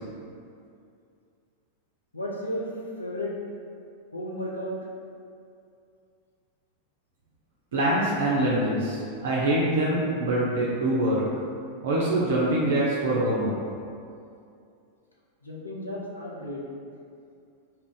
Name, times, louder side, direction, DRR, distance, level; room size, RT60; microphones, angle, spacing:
voice 1, 2.1-2.7 3.0-3.3 4.1-4.8 15.4-16.6, equal, 80° left, -4 dB, 0.4 m, -33 dB
voice 2, 7.7-11.2 11.8-13.5, right 1 dB, 60° right, -6 dB, 0.4 m, -24 dB
2.4 x 2.1 x 3.8 m, 2.4 s
figure-of-eight pair, 90°, 0 cm